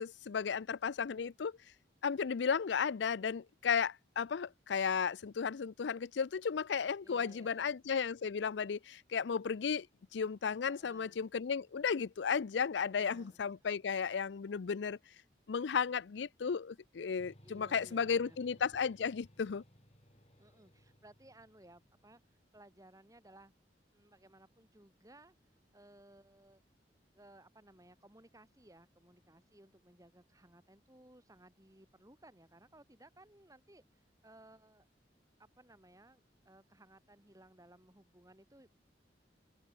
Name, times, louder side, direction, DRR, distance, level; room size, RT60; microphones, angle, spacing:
voice 1, 0.0-1.6 2.0-9.9 10.1-15.0 15.5-19.6, left 6 dB, 75° left, 0.5 m, -34 dB
voice 2, 7.0-7.8 10.7-11.3 12.8-13.7 17.4-18.6 20.4-23.5 23.9-25.3 25.7-26.6 27.1-34.9 35.4-38.8, right 1 dB, 20° right, 5.7 m, -60 dB
sound 1, 17.2-22.7, equal, 35° left, 7.3 m, -63 dB
open air
head